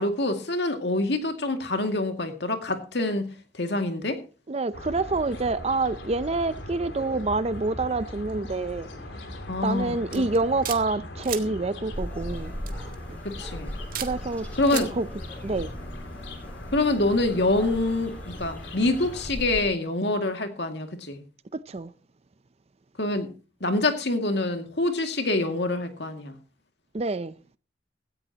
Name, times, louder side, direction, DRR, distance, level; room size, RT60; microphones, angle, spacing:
voice 1, 0.0-3.3 3.6-4.2 9.5-10.2 13.2-13.7 14.6-14.9 16.7-21.2 23.0-23.3 23.6-26.4, left 2 dB, 65° left, 2.3 m, -26 dB
voice 2, 4.5-8.9 9.6-12.5 13.1-13.2 13.9-14.5 14.7-15.1 15.4-15.7 21.5-21.9 26.9-27.3, right 3 dB, 35° right, 0.6 m, -27 dB
sound 1, 4.7-19.3, left 1 dB, 85° left, 2.9 m, -40 dB
sound 2, 10.1-10.8 11.2-11.4 12.7-12.9 13.9-14.1 14.6-14.9, right 10 dB, 50° right, 1.7 m, -33 dB
sound 3, 11.9-19.7, equal, 10° left, 7.3 m, -39 dB
17.0 x 14.0 x 2.9 m
head